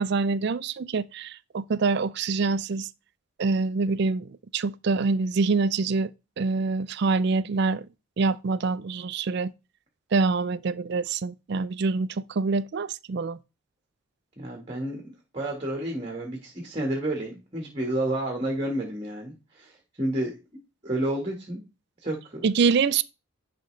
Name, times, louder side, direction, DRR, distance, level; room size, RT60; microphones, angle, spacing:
voice 1, 0.0-2.9 3.4-7.9 8.2-9.5 10.1-13.4 22.4-23.0, right 4 dB, 50° right, 0.4 m, -25 dB
voice 2, 14.4-21.6 22.0-22.4, right 1 dB, 25° right, 1.4 m, -31 dB
10.5 x 5.0 x 3.2 m
head